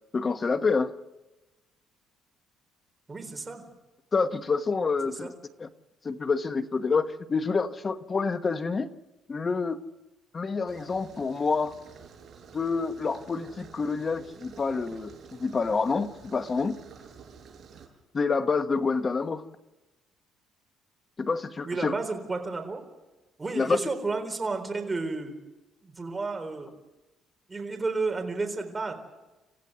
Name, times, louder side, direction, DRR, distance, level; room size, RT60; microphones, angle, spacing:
voice 1, 0.1-0.9 4.1-5.3 5.6-5.7 6.0-8.9 9.3-9.8 10.3-11.7 12.5-16.8 18.1-19.4 21.2-22.0 23.5-23.8, left 4 dB, 25° left, 9 dB, 1.2 m, -27 dB
voice 2, 3.1-3.6 5.2-5.3 21.7-22.8 23.4-25.3 25.8-26.7 27.5-28.9, right 3 dB, 15° right, 4 dB, 4.1 m, -31 dB
sound 1, 10.7-17.9, right 6 dB, 40° right, 7.1 m, -50 dB
28.0 x 15.5 x 8.1 m, 1.1 s
cardioid pair, 140°, 0 cm